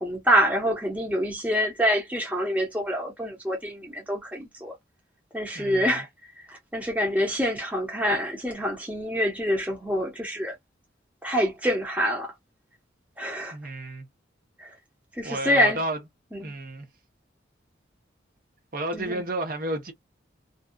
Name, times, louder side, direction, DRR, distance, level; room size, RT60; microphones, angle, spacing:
voice 1, 0.0-4.7 5.3-6.1 6.4-10.5 11.2-12.3 13.2-13.6 14.6-14.7 15.2-15.8 16.3-16.5 18.9-19.2, equal, 10° right, 0.8 m, -26 dB
voice 2, 5.5-6.0 13.5-14.1 15.2-16.0 16.4-16.9 18.7-19.9, right 2 dB, 45° right, 0.8 m, -31 dB
2.6 x 2.3 x 2.2 m
head